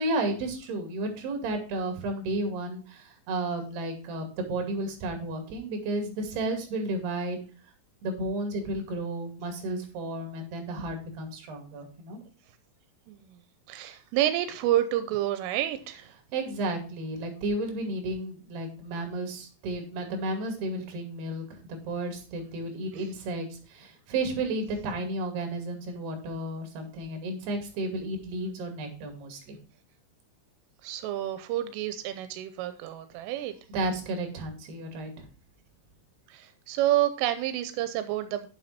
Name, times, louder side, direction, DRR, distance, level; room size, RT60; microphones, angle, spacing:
voice 1, 0.0-7.4 8.0-12.2 16.3-29.6 33.7-35.3, right 2 dB, 60° right, 5 dB, 4.1 m, -32 dB
voice 2, 13.7-16.1 30.8-33.5 36.3-38.5, right 13 dB, 90° right, 10 dB, 3.3 m, -29 dB
9.1 x 7.6 x 4.3 m, 0.36 s
omnidirectional pair, 5.7 m